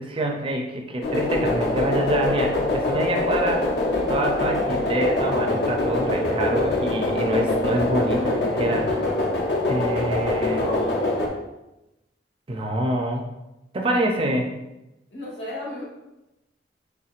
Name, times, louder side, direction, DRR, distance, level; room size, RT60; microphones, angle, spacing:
voice 1, 0.0-3.7 4.1-9.0 9.7-10.6 12.5-13.2 13.7-14.5, right 1 dB, 30° right, 2 dB, 0.4 m, -26 dB
sound 1, 1.0-11.3, left 2 dB, 70° left, 0.7 m, -24 dB
voice 2, 10.4-11.0 15.1-15.8, left 1 dB, 90° left, -5 dB, 1.5 m, -32 dB
4.3 x 3.4 x 2.4 m, 0.94 s
head